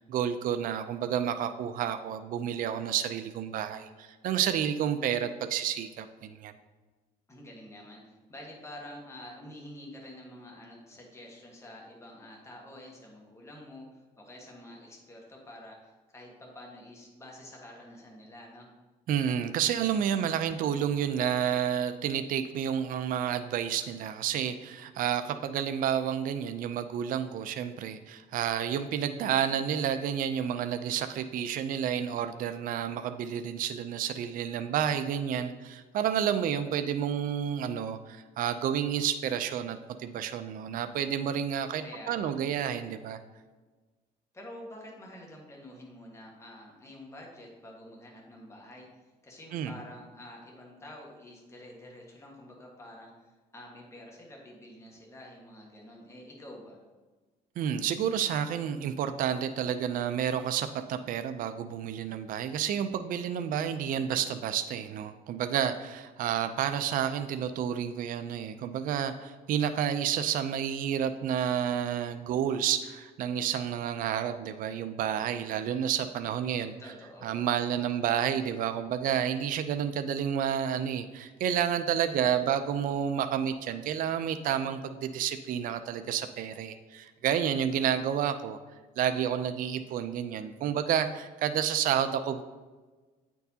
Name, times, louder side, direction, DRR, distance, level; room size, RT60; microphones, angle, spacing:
voice 1, 0.1-6.5 19.1-43.2 49.5-49.7 57.6-76.7 77.2-88.6 89.0-92.4, right 9 dB, 55° right, 9 dB, 0.4 m, -30 dB
voice 2, 7.3-18.7 20.1-20.6 41.8-42.4 44.3-48.9 49.2-56.8 76.7-77.3, left 1 dB, 15° left, -2 dB, 1.4 m, -48 dB
8.9 x 4.5 x 2.8 m, 1.3 s
cardioid pair, 110°, 17 cm